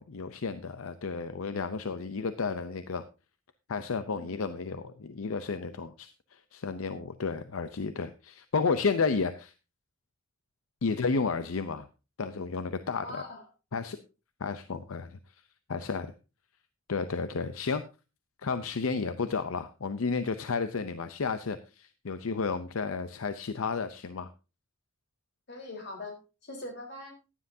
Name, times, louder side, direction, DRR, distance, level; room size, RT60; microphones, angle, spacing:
voice 1, 0.0-3.0 3.7-9.5 10.8-11.9 12.2-13.2 13.7-14.0 14.4-15.2 15.7-16.1 16.9-17.8 18.4-24.3, left 4 dB, 80° left, 11 dB, 0.6 m, -32 dB
voice 2, 12.9-13.4 25.5-26.2 26.4-27.1, left 2 dB, 55° left, 2 dB, 3.9 m, -41 dB
15.0 x 10.0 x 2.7 m, 0.30 s
head